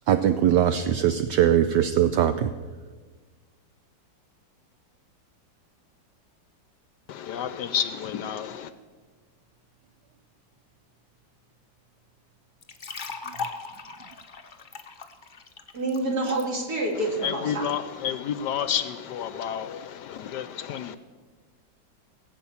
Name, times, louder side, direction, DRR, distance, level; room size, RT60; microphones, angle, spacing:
voice 1, 0.1-2.5, right 10 dB, 70° right, 1.1 m, -21 dB
voice 2, 7.1-8.7 16.9-21.0, left 8 dB, 70° left, 1.1 m, -30 dB
sound 1, 12.6-16.4, left 5 dB, 40° left, 0.7 m, -38 dB
voice 3, 15.7-17.7, right 2 dB, 50° right, 3.3 m, -27 dB
19.0 x 8.4 x 7.1 m
omnidirectional pair, 2.1 m